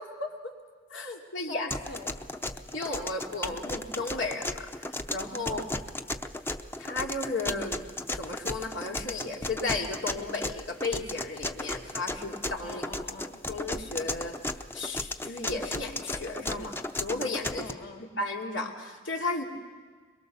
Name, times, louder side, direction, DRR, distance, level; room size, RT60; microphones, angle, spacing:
voice 1, 0.2-0.5 0.9-1.7 2.7-4.7 5.1-5.6 6.8-7.9 8.2-12.8 13.5-14.3 14.7-17.7 18.0-19.4, left 3 dB, 85° left, 0 dB, 2.8 m, -34 dB
voice 2, 1.4-2.2 5.4-5.7 12.6-13.4 17.5-18.0, left 3 dB, 55° left, 0 dB, 1.5 m, -44 dB
sound 1, 1.7-17.7, left 1 dB, 10° left, 0.7 m, -35 dB
23.0 x 22.5 x 6.9 m, 1.5 s
head